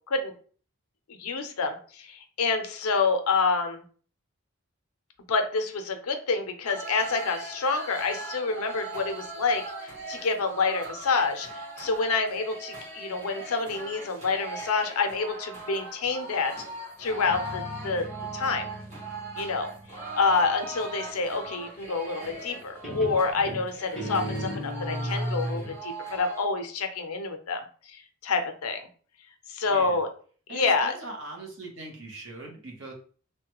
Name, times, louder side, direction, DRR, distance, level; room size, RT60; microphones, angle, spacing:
voice 1, 1.2-3.8 5.3-16.5 17.0-18.1 18.3-18.7 19.4-19.7 20.1-27.6 27.9-28.8 29.5-30.1 30.5-30.9, left 4 dB, 90° left, 6 dB, 0.6 m, -28 dB
sound 1, 6.6-26.5, right 2 dB, 35° right, 1.3 m, -40 dB
Guitar, 17.1-20.7 22.2-22.6 22.8-25.8, right 1 dB, ahead, 0.7 m, -36 dB
voice 2, 29.7-30.0 30.5-32.9, right 2 dB, 60° right, 1 dB, 0.9 m, -41 dB
3.2 x 2.2 x 2.9 m, 0.43 s
head